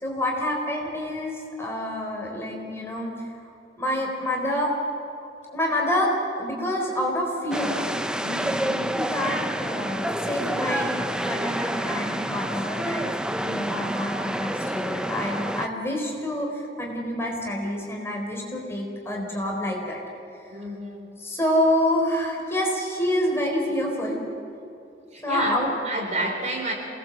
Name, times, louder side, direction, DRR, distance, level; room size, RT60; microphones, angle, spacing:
voice 1, 0.0-3.3 3.8-4.7 5.5-6.1 6.4-7.9 8.9-13.1 13.3-20.0 20.4-20.5 21.2-24.2 25.2-25.7, left 1 dB, 15° left, -1 dB, 4.3 m, -27 dB
sound 1, 7.5-15.7, right 1 dB, 5° right, 0.7 m, -28 dB
voice 2, 8.2-9.0 20.5-21.1 25.1-26.7, right 1 dB, 40° right, 1 dB, 4.2 m, -30 dB
27.5 x 19.5 x 7.5 m, 2.7 s
head